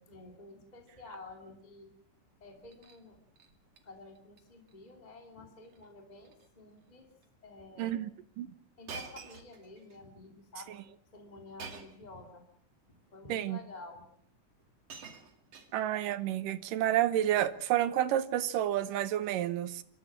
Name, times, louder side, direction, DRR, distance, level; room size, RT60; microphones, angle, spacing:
voice 1, 0.1-1.9 2.4-3.2 3.8-7.1 7.4-8.0 8.8-10.8 11.1-12.4 12.9-14.0, left 2 dB, 15° left, 2.5 m, -50 dB
Shatter, 2.5-3.0 3.4-3.8 4.2-4.4 4.7-4.8 5.7-5.9 6.2-6.5 7.2-7.3 8.9-10.0 11.6-12.1 13.1-13.2 14.2-14.3 14.6-16.1 17.1-17.3, right 5 dB, 55° right, 3.2 m, -48 dB
voice 2, 7.8-8.1 8.4-8.5 13.3-13.6 15.7-19.8, right 12 dB, 90° right, 2.7 m, -30 dB
27.5 x 14.0 x 7.4 m
omnidirectional pair, 3.7 m